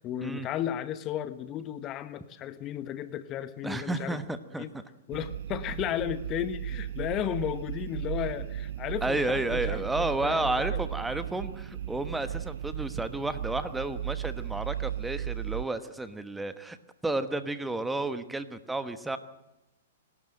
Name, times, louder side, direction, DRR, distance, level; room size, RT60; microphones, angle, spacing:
voice 1, 0.0-4.2 4.5-4.7 5.1-10.8, left 10 dB, 30° left, 13 dB, 1.2 m, -34 dB
voice 2, 3.6-4.8 9.0-16.8 17.0-19.2, right 2 dB, 5° right, 11 dB, 1.2 m, -32 dB
sound 1, 5.1-15.6, right 11 dB, 65° right, 0.6 m, -36 dB
27.0 x 12.5 x 7.8 m, 0.95 s
hypercardioid pair, 125°, 0 cm